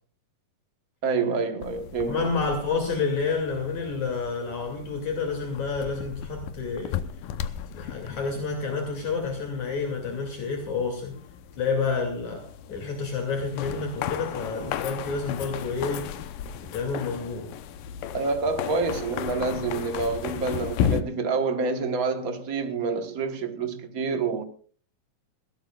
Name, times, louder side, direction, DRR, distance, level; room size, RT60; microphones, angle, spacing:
voice 1, 1.0-2.3 18.1-24.4, right 4 dB, 70° right, 0.8 m, -27 dB
sound 1, 1.6-21.0, left 9 dB, 90° left, 2.6 m, -35 dB
voice 2, 2.1-7.0 7.7-11.2 11.6-16.3 16.6-17.5, left 4 dB, 60° left, 3.8 m, -29 dB
21.0 x 16.5 x 2.4 m
omnidirectional pair, 3.7 m